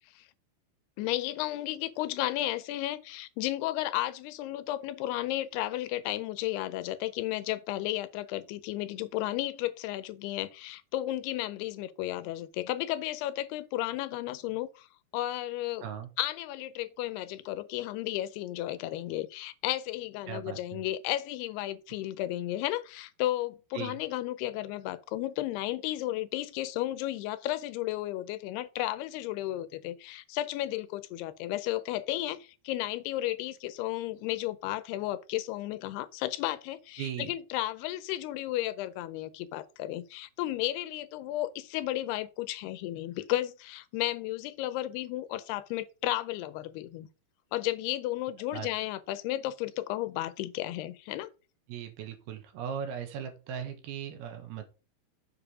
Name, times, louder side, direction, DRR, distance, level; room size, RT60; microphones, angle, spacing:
voice 1, 1.0-14.9 15.1-15.8 16.2-47.1 47.5-51.3, left 15 dB, 85° left, 2.7 m, -33 dB
voice 2, 20.3-20.8 23.7-24.0 37.0-37.3 48.5-48.7 51.7-54.6, right 8 dB, 80° right, 3.2 m, -38 dB
7.4 x 4.9 x 4.8 m
omnidirectional pair, 4.6 m